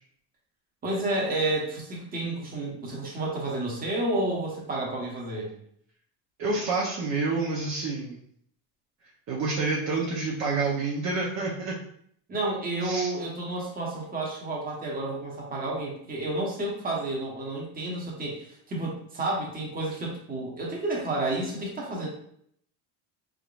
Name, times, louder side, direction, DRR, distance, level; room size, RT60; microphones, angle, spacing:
voice 1, 0.8-5.5 12.3-22.1, right 2 dB, 20° right, -2 dB, 1.1 m, -30 dB
voice 2, 6.4-8.2 9.3-11.7 12.8-13.1, right 3 dB, 45° right, -4 dB, 0.8 m, -28 dB
4.4 x 3.7 x 2.5 m, 0.68 s
cardioid pair, 150°, 39 cm